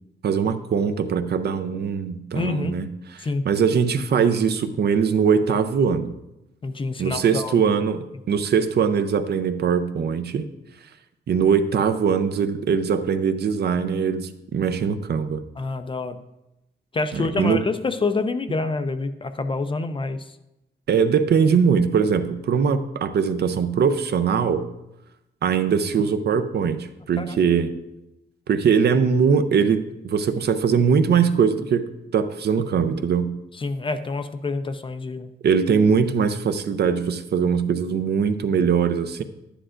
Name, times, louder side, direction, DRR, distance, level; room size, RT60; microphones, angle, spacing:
voice 1, 0.2-6.1 7.0-10.5 11.3-15.4 17.1-17.6 20.9-24.7 25.4-26.8 27.1-27.7 28.5-33.3 35.4-39.2, right 6 dB, 55° right, 10 dB, 0.5 m, -21 dB
voice 2, 2.3-2.8 3.2-3.4 6.6-7.6 15.6-16.2 16.9-20.2 27.2-27.4 33.6-35.3, left 3 dB, 25° left, 10 dB, 0.4 m, -27 dB
11.0 x 10.0 x 2.5 m, 0.91 s
wide cardioid pair, 175°, 20 cm